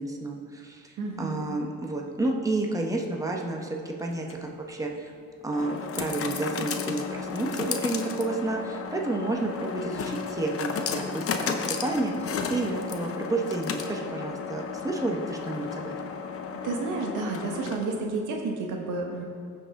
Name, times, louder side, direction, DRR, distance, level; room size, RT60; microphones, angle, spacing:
voice 1, 0.0-5.1 5.4-16.1, right 2 dB, 10° right, 0 dB, 1.1 m, -31 dB
voice 2, 1.0-1.6 16.6-19.2, right 3 dB, 80° right, 1 dB, 1.4 m, -31 dB
sound 1, 4.1-18.1, left 6 dB, 50° left, 0.8 m, -34 dB
15.0 x 5.2 x 3.7 m, 2.2 s
cardioid pair, 90°, 30 cm